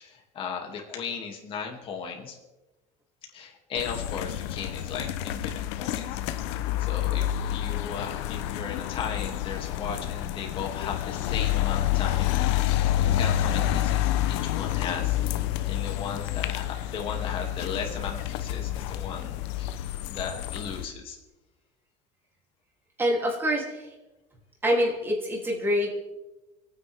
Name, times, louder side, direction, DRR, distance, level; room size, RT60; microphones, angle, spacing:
voice 1, 0.0-2.4 3.3-6.1 6.4-12.3 12.6-19.8 20.1-21.2, left 6 dB, 35° left, 1 dB, 2.7 m, -36 dB
sound 1, 3.8-20.8, left 12 dB, 85° left, 0.9 m, -28 dB
voice 2, 23.0-23.9 24.6-25.9, equal, 15° right, -2 dB, 3.3 m, -25 dB
28.5 x 9.7 x 3.7 m, 1.1 s
cardioid pair, 150°, 15 cm